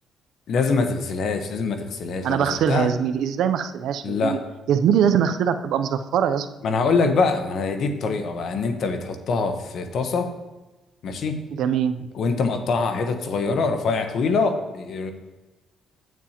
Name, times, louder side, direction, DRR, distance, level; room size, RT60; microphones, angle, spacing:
voice 1, 0.5-2.9 4.0-4.4 6.6-10.3 11.0-11.4 12.1-15.1, left 4 dB, 65° left, 7 dB, 1.0 m, -24 dB
voice 2, 2.2-4.4 4.7-6.5 11.5-12.0, right 8 dB, 80° right, 9 dB, 0.5 m, -22 dB
9.3 x 8.6 x 2.9 m, 1.1 s
cardioid pair, 90°, 0 cm